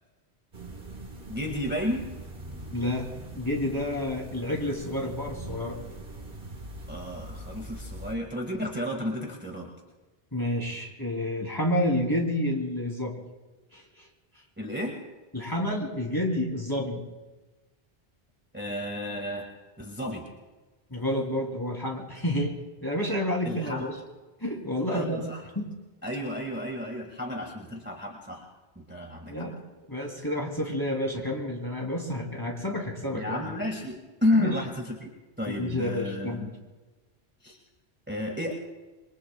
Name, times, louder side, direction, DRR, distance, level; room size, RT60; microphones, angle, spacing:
sound 1, 0.5-8.1, right 1 dB, 60° right, 1.9 m, -42 dB
voice 1, 1.3-2.1 6.9-9.7 14.6-15.0 18.5-19.5 19.8-20.3 23.5-23.9 24.9-25.4 26.0-28.5 28.8-29.5 33.1-33.9 34.2-35.1 35.4-36.5 37.4-37.6 38.1-38.5, left 1 dB, 10° right, 0 dB, 1.9 m, -31 dB
voice 2, 2.7-3.1 3.4-5.8 10.3-13.2 13.7-14.1 15.3-17.0 20.9-22.5 22.8-23.9 24.4-25.3 25.5-25.7 29.2-29.6 29.9-33.5 34.4-34.6 35.5-36.4, left 1 dB, 20° left, 0 dB, 3.1 m, -29 dB
27.0 x 23.0 x 2.3 m, 1.2 s
omnidirectional pair, 1.1 m